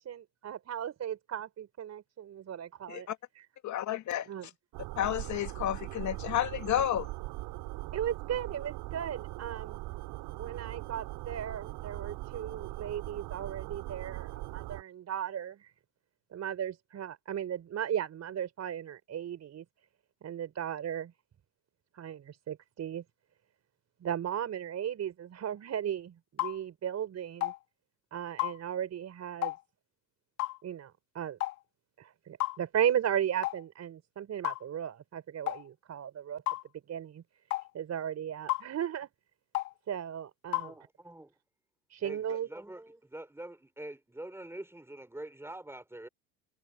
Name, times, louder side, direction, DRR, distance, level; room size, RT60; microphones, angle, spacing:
voice 1, 0.0-3.1 4.3-4.5 7.9-9.8 10.4-15.7 16.3-19.6 20.2-21.1 22.0-23.0 24.0-27.5 28.1-29.5 30.6-31.4 32.0-36.4 36.9-37.2 37.7-39.1 39.9-40.7 41.9-42.5, right 9 dB, 40° right, 4.5 m, -36 dB
voice 2, 3.6-4.3 5.0-7.1, left 11 dB, 45° left, 2.2 m, -31 dB
sound 1, 4.7-14.8, right 20 dB, 60° right, 4.4 m, -40 dB
sound 2, 26.4-26.6 27.4-27.6 28.4-28.6 29.4-29.6 30.4-30.6 31.4-31.6 32.4-32.6 33.4-33.6 34.4-34.6 35.5-35.6 36.5-36.6 37.5-37.7 38.5-38.7 39.5-39.7 40.5-40.7, left 18 dB, 85° left, 2.3 m, -32 dB
voice 3, 40.6-41.3 42.0-46.1, right 1 dB, 5° right, 6.2 m, -45 dB
hypercardioid pair, 90°, 42 cm